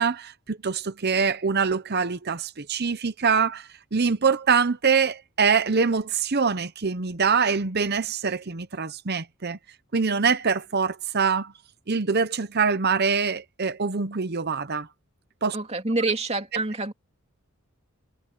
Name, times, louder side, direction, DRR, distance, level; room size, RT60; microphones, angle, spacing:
voice 1, 0.0-9.6 9.9-11.5 11.9-14.9 15.4-15.6, right 5 dB, 45° right, 0.8 m, -24 dB
voice 2, 15.5-16.9, right 2 dB, 30° right, 2.5 m, -27 dB
head